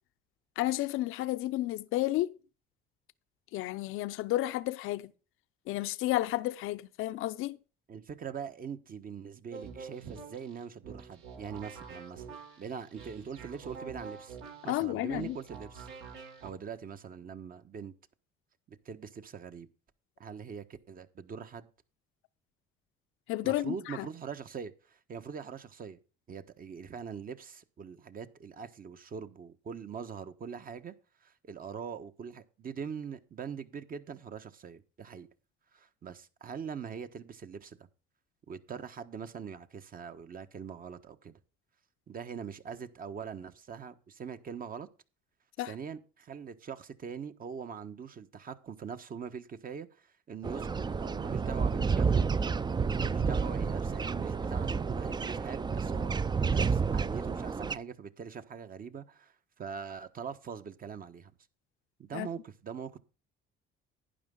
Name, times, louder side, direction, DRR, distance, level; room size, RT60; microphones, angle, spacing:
voice 1, 0.6-2.3 3.5-5.1 5.7-7.6 14.6-15.4 23.3-24.1 45.6-45.7 62.1-62.3, left 16 dB, 80° left, 0.7 m, -32 dB
voice 2, 7.9-12.3 12.6-14.4 14.6-15.9 16.4-17.9 18.7-19.7 20.2-21.7 23.4-26.0 26.3-30.9 31.2-35.3 35.7-37.8 38.5-41.4 42.1-44.9 45.6-52.2 52.8-56.1 56.5-61.3 62.0-63.0, right 6 dB, 45° right, 1.3 m, -42 dB
sound 1, 9.5-16.5, right 5 dB, 80° right, 3.8 m, -47 dB
sound 2, 50.4-57.7, right 5 dB, 20° right, 0.5 m, -30 dB
11.5 x 10.0 x 3.8 m
cardioid pair, 100°, 21 cm